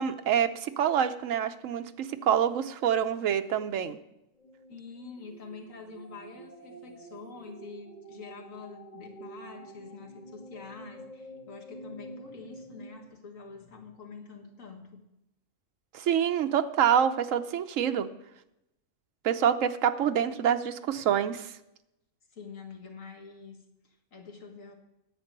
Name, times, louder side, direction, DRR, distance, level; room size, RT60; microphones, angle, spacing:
voice 1, 0.0-4.0 15.9-18.1 19.2-21.5, right 9 dB, 75° right, 9 dB, 1.1 m, -26 dB
sound 1, 4.3-13.1, right 1 dB, 35° left, 1.7 m, -48 dB
voice 2, 4.7-15.0 20.9-21.1 22.3-24.7, left 4 dB, 75° left, 3 dB, 2.0 m, -46 dB
10.5 x 8.4 x 6.6 m, 0.88 s
omnidirectional pair, 1.4 m